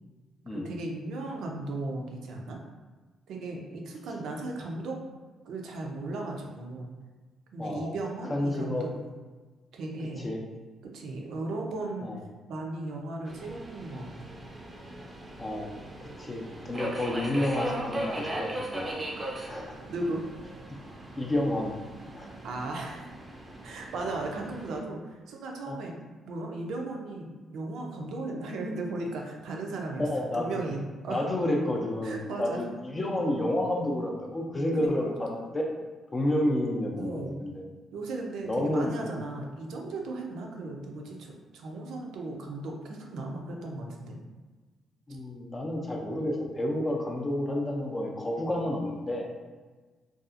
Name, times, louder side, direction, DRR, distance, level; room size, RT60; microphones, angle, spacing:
voice 1, 0.5-2.6 3.3-5.0 5.5-6.9 7.5-8.9 9.7-10.3 10.8-12.1 12.5-14.4 19.9-20.2 22.4-23.1 23.6-25.9 26.2-30.0 30.3-31.3 32.0-32.6 34.7-35.1 36.9-37.4 37.9-44.2, right 2 dB, 75° right, 1 dB, 0.5 m, -36 dB
voice 2, 7.6-7.9 8.3-8.9 10.2-10.4 12.0-12.2 15.4-15.7 16.0-18.9 19.5-19.8 21.2-21.7 22.2-22.3 25.7-25.8 30.0-30.6 31.1-35.7 36.1-37.6 38.5-39.1 45.1-49.3, left 1 dB, 25° left, 0 dB, 0.4 m, -30 dB
Subway metro underground, 13.3-24.8, right 1 dB, 25° right, 0.5 m, -39 dB
2.6 x 2.3 x 2.4 m, 1.3 s
cardioid pair, 90°, 0 cm